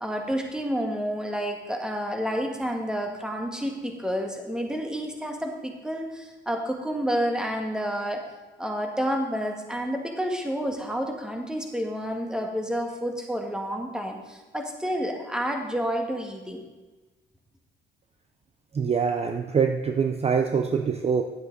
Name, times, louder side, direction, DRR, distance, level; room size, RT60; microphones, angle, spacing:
voice 1, 0.0-8.2 8.6-16.6, equal, 5° right, 2 dB, 1.6 m, -29 dB
voice 2, 18.7-21.2, right 6 dB, 30° right, 6 dB, 0.6 m, -24 dB
10.0 x 7.9 x 3.9 m, 1.2 s
cardioid pair, 90°, 20 cm